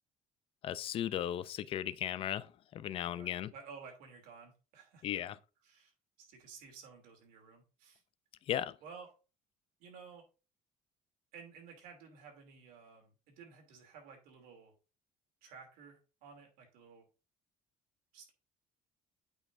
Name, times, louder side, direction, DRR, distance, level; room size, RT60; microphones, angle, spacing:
voice 1, 0.6-3.5 5.0-5.4 8.5-8.7, left 10 dB, 40° left, 0.4 m, -36 dB
voice 2, 3.1-5.2 5.6-5.9 6.2-8.0 8.8-9.1 9.8-10.2 11.3-14.7 15.4-17.1 18.1-18.3, right 5 dB, 85° right, 2.7 m, -54 dB
8.4 x 5.4 x 2.6 m
cardioid pair, 160°, 14 cm